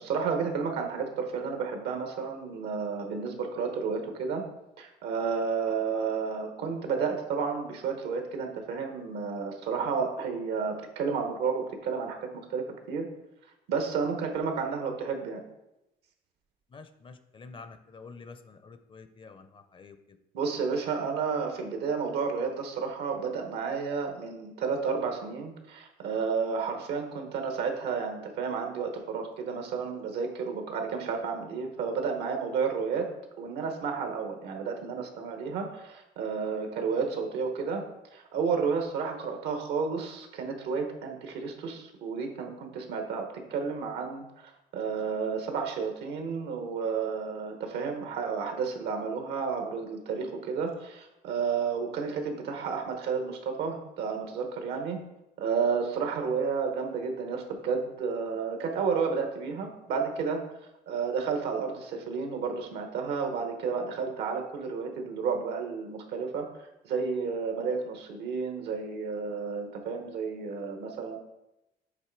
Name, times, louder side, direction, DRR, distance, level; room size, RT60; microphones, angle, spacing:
voice 1, 0.0-4.4 4.8-13.1 13.7-15.4 20.3-33.1 33.4-37.8 38.1-55.0 55.4-60.4 60.9-66.5 66.8-71.2, right 5 dB, 80° right, 4 dB, 1.1 m, -31 dB
voice 2, 16.7-20.2, left 4 dB, 30° left, 10 dB, 0.5 m, -48 dB
7.5 x 3.2 x 4.6 m, 0.91 s
cardioid pair, 110°, 17 cm